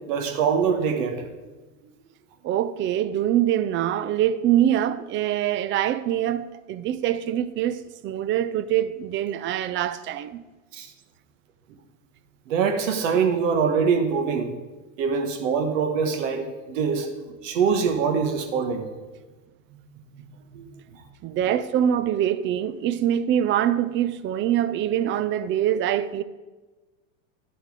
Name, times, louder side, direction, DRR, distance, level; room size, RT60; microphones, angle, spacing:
voice 1, 0.1-1.2 10.7-10.9 12.5-14.5 15.0-18.8 20.5-20.6 20.9-21.0, right 6 dB, 75° right, 1.5 m, -24 dB
voice 2, 2.4-10.4 21.2-26.2, right 11 dB, 30° right, 0.5 m, -24 dB
11.0 x 7.9 x 4.9 m
supercardioid pair, 125°, 39 cm